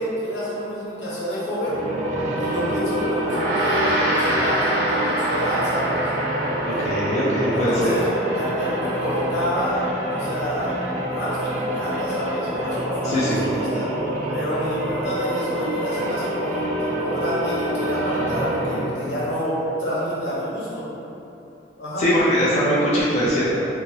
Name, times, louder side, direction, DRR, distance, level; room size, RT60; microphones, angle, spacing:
voice 1, 0.0-1.8 2.4-6.1 7.5-8.1 8.3-10.7 11.1-13.9 14.3-20.8 21.8-22.1, equal, 90° left, -9 dB, 1.0 m, -28 dB
sound 1, 1.6-19.1, right 1 dB, 40° right, 0.3 m, -27 dB
Gong, 3.2-12.8, right 1 dB, 10° left, 1.2 m, -28 dB
voice 2, 6.6-7.9 13.0-13.4 22.0-23.7, equal, 35° left, -7 dB, 0.4 m, -21 dB
2.8 x 2.7 x 2.7 m, 3.0 s
head